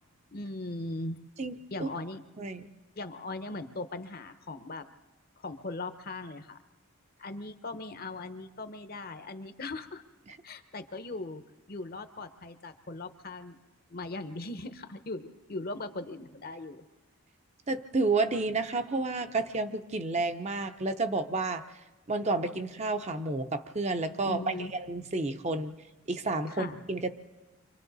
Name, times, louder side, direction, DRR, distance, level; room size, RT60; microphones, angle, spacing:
voice 1, 0.3-1.2 1.7-2.2 3.0-4.9 5.4-6.6 7.2-10.0 10.4-11.4 11.7-13.6 13.9-16.8 24.2-24.7 26.5-26.8, left 2 dB, 40° left, 9 dB, 0.8 m, -39 dB
voice 2, 1.4-1.9 2.4-2.7 10.3-10.4 17.7-21.6 22.1-25.7 26.1-27.1, right 3 dB, 30° right, 7 dB, 0.7 m, -30 dB
29.5 x 25.5 x 4.0 m, 1.2 s
head